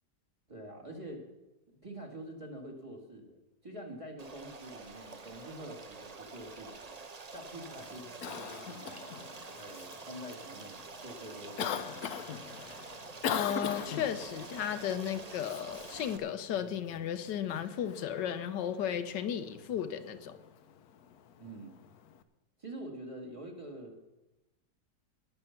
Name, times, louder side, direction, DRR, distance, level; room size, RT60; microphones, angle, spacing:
voice 1, 0.5-1.2 1.8-7.0 7.3-8.9 9.5-12.3 21.4-21.8 22.6-24.0, right 1 dB, 20° right, 1 dB, 2.1 m, -46 dB
Stream, 4.2-16.2, right 4 dB, 35° right, 0.6 m, -47 dB
Cough, 7.7-22.2, left 8 dB, 65° left, 1.2 m, -42 dB
voice 2, 13.3-20.4, left 9 dB, 90° left, 10 dB, 1.5 m, -34 dB
20.5 x 6.9 x 5.8 m, 1.0 s
omnidirectional pair, 1.9 m